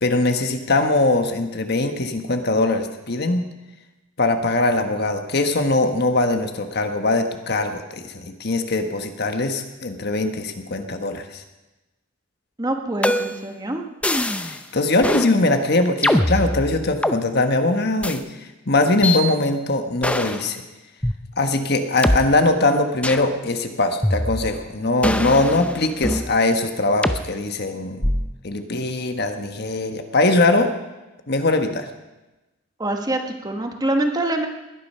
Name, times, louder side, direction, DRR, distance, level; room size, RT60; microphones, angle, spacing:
voice 1, 0.0-3.4 4.2-11.4 14.4-18.2 18.7-20.6 21.4-28.1 28.4-30.7 31.3-31.9, left 2 dB, 50° left, 6 dB, 1.4 m, -21 dB
voice 2, 12.6-13.8 32.8-34.5, right 1 dB, 20° right, 4 dB, 1.3 m, -25 dB
sound 1, 13.0-13.5 14.0-14.6 15.0-15.3 16.0-17.2 18.0-18.2 19.0-19.2 20.0-20.4 21.0-21.1 22.0-22.2 23.0-23.3 24.0-24.6 25.0-26.3 27.0-27.2 28.0-28.4, left 1 dB, 5° left, 0.6 m, -22 dB
20.0 x 10.5 x 5.6 m, 1.1 s
head